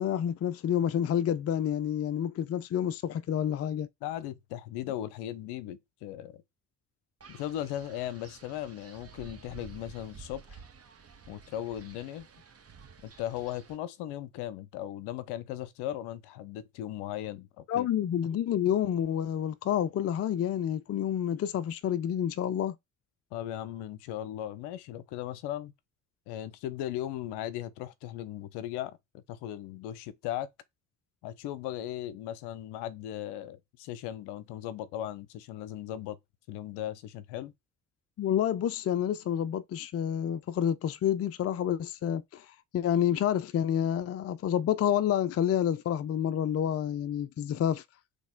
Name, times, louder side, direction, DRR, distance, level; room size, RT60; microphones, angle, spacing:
voice 1, 0.0-3.9 17.7-22.7 38.2-42.5 42.7-47.8, left 10 dB, 35° left, 0.5 m, -29 dB
voice 2, 4.0-6.4 7.3-10.6 11.3-12.3 13.0-17.9 23.3-25.7 26.3-30.5 31.2-36.2 36.5-37.5, left 12 dB, 70° left, 0.8 m, -37 dB
Wind, 7.2-13.8, right 5 dB, 35° right, 1.4 m, -51 dB
3.9 x 3.4 x 3.7 m
hypercardioid pair, 50°, 43 cm